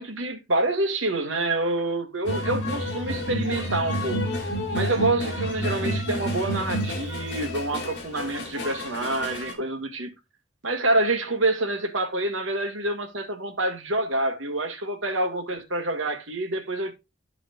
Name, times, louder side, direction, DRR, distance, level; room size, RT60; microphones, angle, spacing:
voice 1, 0.0-4.3 4.7-10.1 10.6-16.9, right 2 dB, 85° right, 1.8 m, -27 dB
sound 1, 2.2-9.5, equal, 55° left, 2.5 m, -30 dB
13.0 x 5.0 x 2.4 m
head